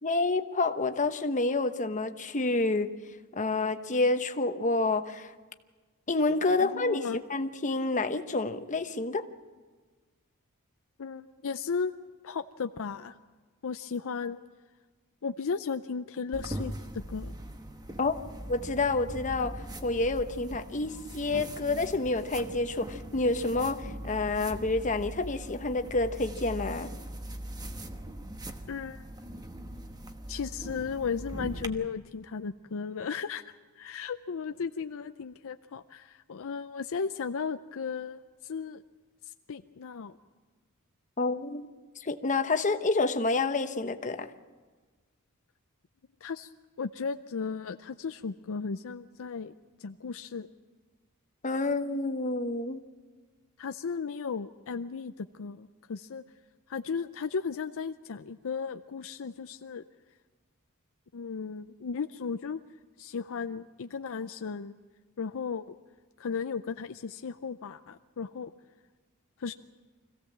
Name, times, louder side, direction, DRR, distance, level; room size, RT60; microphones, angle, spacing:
voice 1, 0.0-2.9 3.4-5.3 6.1-7.0 7.3-9.2 18.0-18.1 18.5-19.5 19.8-26.9 41.2-41.7 42.0-44.3 51.4-52.8, left 3 dB, 35° left, 8 dB, 1.0 m, -28 dB
voice 2, 6.6-7.2 11.0-11.9 12.2-13.2 13.6-14.4 15.2-17.4 28.7-29.0 30.3-38.8 39.3-40.2 46.2-46.5 46.8-49.5 49.8-50.5 53.6-56.2 56.7-59.8 61.1-62.6 63.0-64.8 65.2-65.6 66.2-68.5 69.4-69.5, left 5 dB, 65° left, 9 dB, 0.5 m, -35 dB
sound 1, 16.3-31.7, right 1 dB, 20° right, 1.1 m, -41 dB
25.0 x 16.0 x 7.4 m, 1.4 s
head